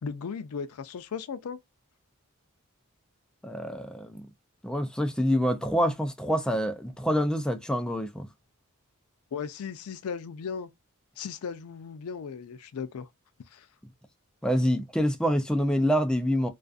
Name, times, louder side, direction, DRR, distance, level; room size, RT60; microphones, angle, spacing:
voice 1, 0.0-1.6 9.3-10.7 11.2-13.1 13.4-13.7, left 6 dB, 85° left, 0.4 m, -36 dB
voice 2, 3.4-4.3 4.6-8.3 14.4-16.5, equal, 5° left, 0.3 m, -26 dB
2.4 x 2.4 x 2.3 m
head